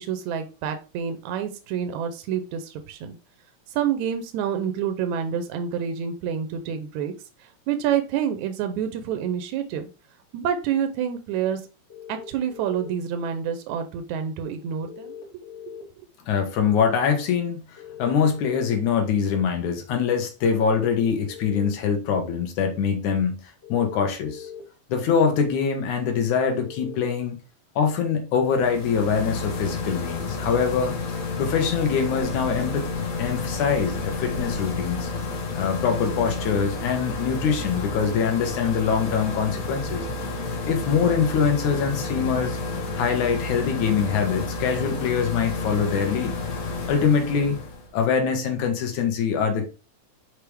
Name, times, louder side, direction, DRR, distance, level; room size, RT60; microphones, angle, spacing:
voice 1, 0.0-3.2 3.7-7.1 7.4-9.9 10.3-11.6 12.1-15.8, right 8 dB, 80° right, 2.1 m, -28 dB
sound 1, 11.9-12.9 14.8-15.8 17.8-18.7 20.7-21.7 23.6-24.6 26.6-27.0, left 9 dB, 25° left, 3.1 m, -40 dB
voice 2, 16.3-23.4 23.7-24.5 24.9-27.4 27.8-30.9 31.4-32.9 33.2-35.1 35.5-40.1 40.7-42.6 42.9-46.3 46.9-47.6 47.9-49.7, left 6 dB, 85° left, 2.8 m, -23 dB
sound 2, 28.5-47.9, left 3 dB, 70° left, 2.7 m, -30 dB
6.8 x 4.9 x 3.4 m
omnidirectional pair, 3.3 m